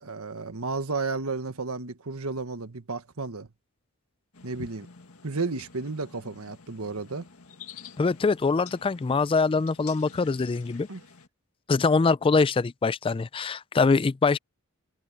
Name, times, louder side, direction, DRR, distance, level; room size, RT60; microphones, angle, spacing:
voice 1, 0.0-3.5 4.4-4.9 5.2-7.2 10.9-11.0, right 3 dB, 85° right, 1.5 m, -32 dB
sound 1, 4.3-11.3, left 5 dB, 85° left, 2.0 m, -49 dB
voice 2, 8.0-10.9 11.7-14.4, left 4 dB, 25° left, 0.3 m, -23 dB
head